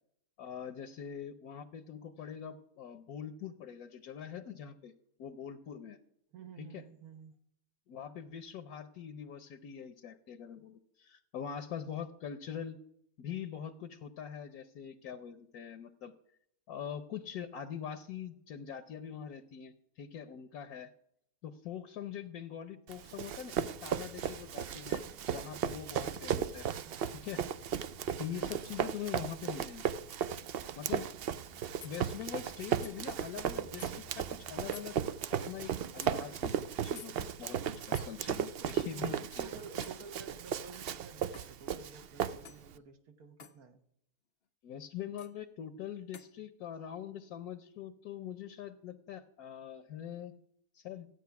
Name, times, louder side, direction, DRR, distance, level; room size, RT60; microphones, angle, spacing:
voice 1, 0.4-4.9 5.2-6.0 6.6-6.8 7.9-12.8 13.2-16.1 16.7-20.9 21.4-25.0 25.3-26.7 27.2-27.4 28.2-29.8 30.8-31.2 31.8-35.0 35.3-39.6 44.6-50.3 50.7-51.1, left 8 dB, 70° left, 10 dB, 1.2 m, -43 dB
voice 2, 6.3-7.3 26.7-27.1 38.6-43.8, right 5 dB, 70° right, 6 dB, 1.5 m, -52 dB
Run, 22.9-42.7, right 8 dB, 85° right, 0.5 m, -36 dB
sound 1, 23.6-35.8, left 2 dB, 10° right, 0.4 m, -61 dB
sound 2, 31.8-32.0 32.8-33.0 33.8-33.9 34.7-34.9 36.0-36.1 37.0-37.1 37.9-38.1 39.8-40.1 41.3-41.6 42.4-42.7 43.4-43.6 45.2-45.3 46.1-46.3, left 7 dB, 50° left, 0.8 m, -51 dB
14.0 x 8.9 x 5.8 m, 0.75 s
omnidirectional pair, 1.7 m